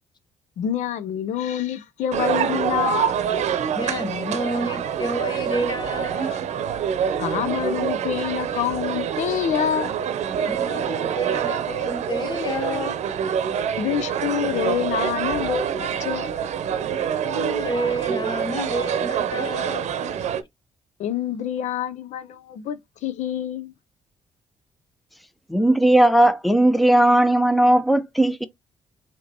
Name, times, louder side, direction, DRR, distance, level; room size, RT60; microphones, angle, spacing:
voice 1, 0.6-3.2 6.2-6.4 7.2-10.0 13.8-16.4 21.0-23.7, left 9 dB, 80° left, 0.6 m, -27 dB
sound 1, 2.1-20.4, right 8 dB, 70° right, 0.7 m, -26 dB
voice 2, 3.7-6.3 10.5-12.9 16.9-19.9, right 1 dB, 40° left, 1.0 m, -29 dB
voice 3, 25.5-28.5, right 1 dB, ahead, 0.6 m, -17 dB
5.0 x 2.9 x 2.8 m
cardioid pair, 90°, 12 cm